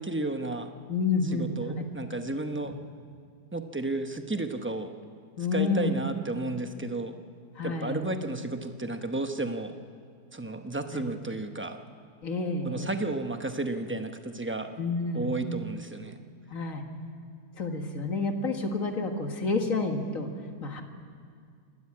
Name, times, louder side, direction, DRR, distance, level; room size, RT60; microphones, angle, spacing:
voice 1, 0.0-0.7 1.3-2.7 3.5-5.0 5.5-7.1 7.6-9.8 10.3-11.8 12.6-14.7 15.1-16.2, right 2 dB, 15° right, 6 dB, 0.5 m, -32 dB
voice 2, 0.9-1.5 5.4-6.0 7.6-8.0 10.9-11.0 12.2-12.9 14.8-15.3 16.5-16.8 17.6-20.3 20.6-20.8, left 3 dB, 55° left, 4 dB, 2.0 m, -29 dB
27.5 x 13.0 x 8.6 m, 2.1 s
omnidirectional pair, 1.8 m